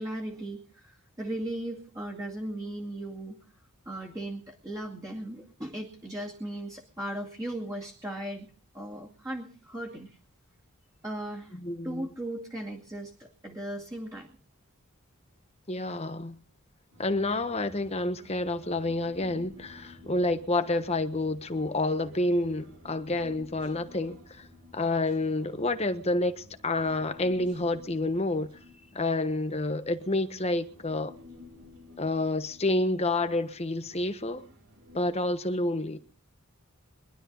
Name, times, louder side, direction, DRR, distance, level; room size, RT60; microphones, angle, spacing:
voice 1, 0.0-3.4 3.9-8.5 8.7-10.2 11.0-11.6 11.8-14.3, right 1 dB, 15° right, 2.3 m, -37 dB
voice 2, 11.6-12.1 15.7-16.4 17.0-24.4 24.7-28.5 28.9-31.1 32.0-34.4 34.9-36.0, left 2 dB, 30° left, 1.2 m, -29 dB
Human voice, 16.9-35.1, left 2 dB, 85° right, 6.4 m, -53 dB
23.0 x 12.0 x 4.0 m
head